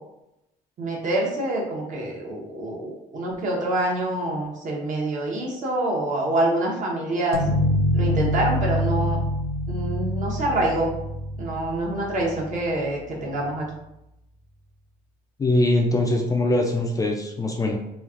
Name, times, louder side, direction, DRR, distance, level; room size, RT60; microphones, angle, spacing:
voice 1, 0.8-7.4 7.9-9.2 9.7-10.9 11.4-13.7, right 1 dB, 50° right, -1 dB, 0.9 m, -26 dB
sound 1, 7.3-12.9, equal, 55° left, 0.6 m, -26 dB
voice 2, 15.4-17.8, left 1 dB, 20° left, 1 dB, 0.3 m, -22 dB
3.1 x 2.3 x 2.4 m, 0.87 s
cardioid pair, 110°, 17 cm